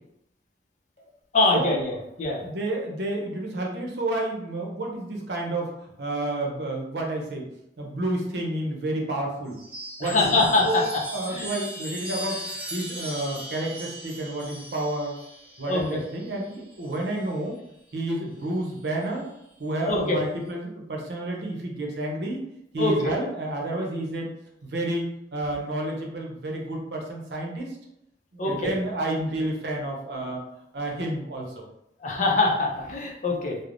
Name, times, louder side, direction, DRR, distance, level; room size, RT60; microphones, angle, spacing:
voice 1, 1.3-2.4 10.0-11.5 15.7-16.0 19.8-20.2 22.8-23.1 28.4-28.7 32.0-33.6, left 2 dB, 45° left, -1 dB, 0.5 m, -24 dB
voice 2, 2.3-5.7 6.0-7.5 7.8-9.6 10.0-10.8 11.1-12.4 12.7-15.1 15.6-17.6 17.9-19.2 19.6-22.4 22.7-24.3 24.6-27.7 28.3-30.4 30.7-31.6, right 1 dB, 70° right, 0 dB, 0.6 m, -30 dB
Chime, 9.5-17.3 18.5-19.1, equal, 5° right, 0.8 m, -39 dB
3.2 x 2.0 x 2.5 m, 0.81 s
head